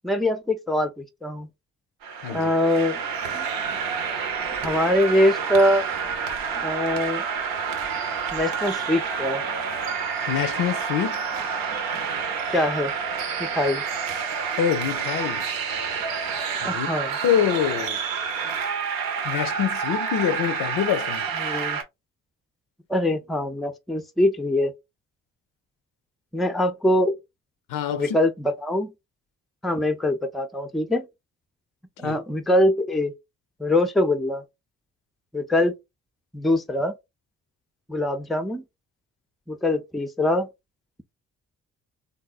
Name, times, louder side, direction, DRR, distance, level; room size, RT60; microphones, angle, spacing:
voice 1, 0.0-1.5 2.3-3.0 3.3-3.5 4.6-5.9 6.6-7.3 8.3-9.4 12.5-12.9 13.4-13.8 16.6-17.2 21.4-21.8 22.9-24.7 26.3-27.1 27.9-28.9 29.6-31.1 32.0-33.1 33.6-34.4 35.3-35.7 36.3-36.9 37.9-38.6 39.5-40.5, left 1 dB, ahead, 0.4 m, -23 dB
sound 1, 2.0-21.8, right 6 dB, 75° right, 0.7 m, -28 dB
voice 2, 10.3-11.2 14.6-15.5 16.6-16.9 17.2-18.0 18.4-18.6 19.2-21.3 27.7-28.2 32.0-32.2, left 9 dB, 70° left, 0.5 m, -25 dB
3.5 x 2.1 x 2.3 m
hypercardioid pair, 45°, 35 cm